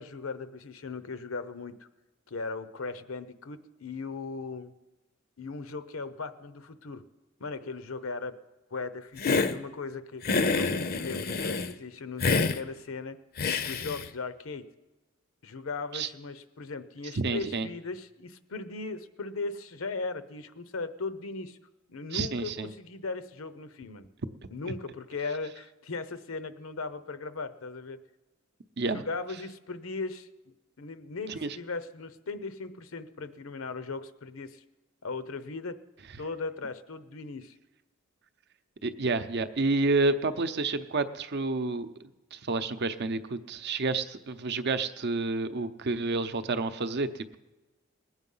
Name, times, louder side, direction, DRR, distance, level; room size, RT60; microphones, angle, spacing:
voice 1, 0.0-1.9 2.3-4.7 5.4-7.0 7.4-8.3 8.7-10.2 10.5-13.2 13.6-14.6 15.4-21.6 21.9-24.1 24.5-28.0 28.9-30.3 30.8-34.6 35.0-35.8 36.2-37.6, left 3 dB, 75° left, 12 dB, 0.8 m, -38 dB
Hiss, 9.2-9.6 10.2-11.7 12.2-12.6 13.4-14.1, left 4 dB, 45° left, 0.6 m, -27 dB
voice 2, 17.2-17.7 22.1-22.7 28.8-29.0 31.3-31.6 38.8-47.4, right 3 dB, 55° right, 11 dB, 0.7 m, -29 dB
20.0 x 8.1 x 5.5 m, 1.1 s
head